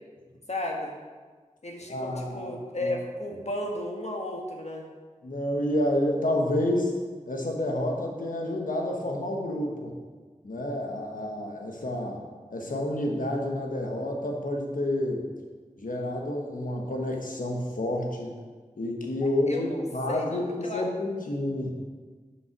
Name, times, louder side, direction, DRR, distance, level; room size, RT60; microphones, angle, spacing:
voice 1, 0.5-0.9 1.6-4.9 19.2-20.8, left 1 dB, 55° left, 1 dB, 1.4 m, -34 dB
voice 2, 1.9-2.5 2.8-3.0 5.2-6.9 7.3-9.9 10.4-12.2 12.5-15.2 15.8-18.3 18.8-21.7, left 1 dB, 85° left, 1 dB, 1.2 m, -29 dB
6.6 x 5.5 x 6.0 m, 1.5 s
wide cardioid pair, 60°, 14 cm